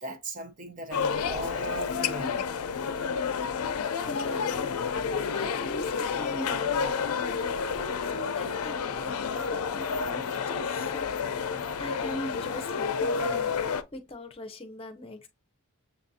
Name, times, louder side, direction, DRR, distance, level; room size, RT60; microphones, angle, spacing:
voice 1, 0.0-2.4 11.5-11.8, right 1 dB, 35° right, 0.6 m, -38 dB
sound 1, 0.9-13.8, left 6 dB, 80° left, 0.4 m, -30 dB
voice 2, 3.8-7.0 7.5-11.2 11.8-15.3, left 1 dB, 25° left, 0.6 m, -41 dB
6.8 x 2.5 x 2.7 m
head